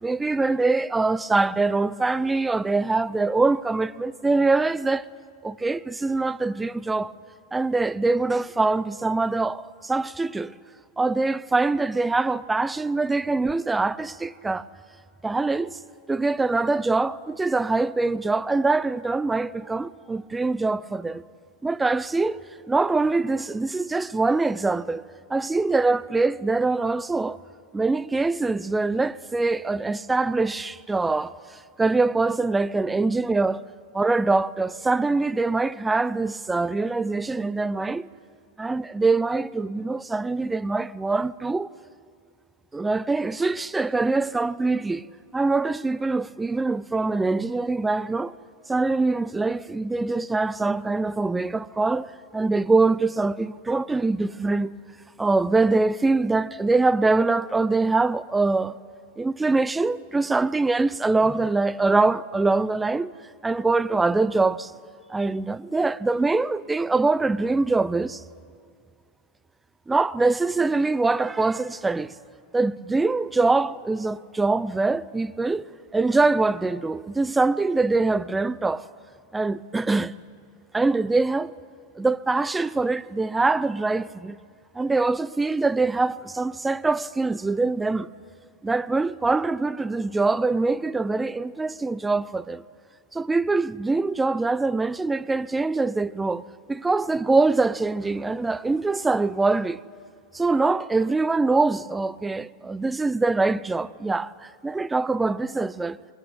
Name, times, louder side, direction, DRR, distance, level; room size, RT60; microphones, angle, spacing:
voice 1, 0.0-5.1 5.4-7.1 7.5-10.5 11.0-14.7 15.2-15.8 16.1-21.2 21.6-22.4 22.7-25.0 25.3-27.4 27.7-33.6 33.9-38.1 38.6-41.7 42.7-45.1 45.3-48.3 48.7-54.7 55.2-58.7 59.2-63.1 63.4-64.7 65.1-68.2 69.9-72.1 72.5-78.9 79.3-80.1 80.7-81.6 82.0-84.4 84.7-88.1 88.6-92.6 93.1-96.4 96.7-99.8 100.3-106.0, right 3 dB, 10° right, 0.6 m, -23 dB
24.0 x 21.5 x 9.1 m
figure-of-eight pair, 90°, 0 cm